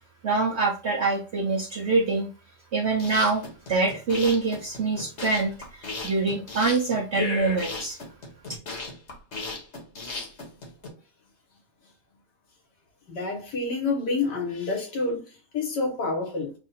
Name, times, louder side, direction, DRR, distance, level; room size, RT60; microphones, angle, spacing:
voice 1, 0.2-2.3 2.7-3.4 3.7-8.0, right 3 dB, 65° right, 0.7 m, -25 dB
sound 1, 2.8-10.9, left 3 dB, 45° left, 1.3 m, -35 dB
voice 2, 13.1-16.5, left 3 dB, 75° left, 1.8 m, -28 dB
3.6 x 2.4 x 4.1 m
omnidirectional pair, 1.8 m